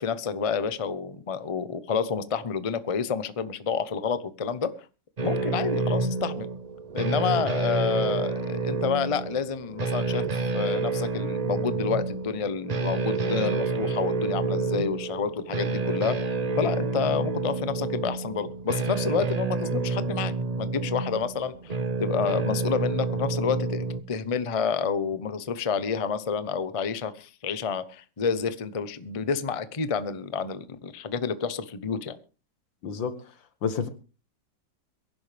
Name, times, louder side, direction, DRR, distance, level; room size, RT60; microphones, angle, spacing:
voice 1, 0.0-4.7 5.2-6.5 6.9-16.2 16.6-32.2, left 6 dB, 30° left, 13 dB, 0.6 m, -29 dB
sound 1, 5.2-24.0, right 3 dB, 90° right, 0.3 m, -29 dB
voice 2, 32.8-33.2 33.6-33.9, left 6 dB, 85° left, 11 dB, 2.1 m, -28 dB
23.0 x 11.5 x 3.4 m, 0.35 s
omnidirectional pair, 2.0 m